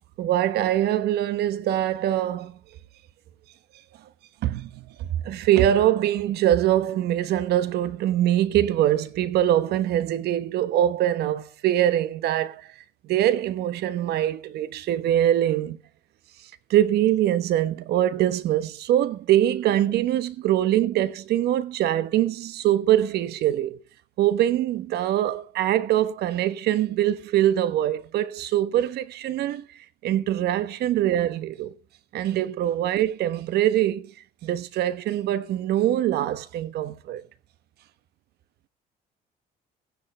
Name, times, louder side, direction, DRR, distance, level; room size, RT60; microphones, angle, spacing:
voice 1, 0.2-2.6 4.4-12.7 13.0-15.8 16.7-23.8 24.2-29.7 30.0-31.7 32.1-34.1 34.4-37.2, right 12 dB, 75° right, 1.1 m, -23 dB
15.0 x 10.5 x 4.4 m
cardioid pair, 110°, 17 cm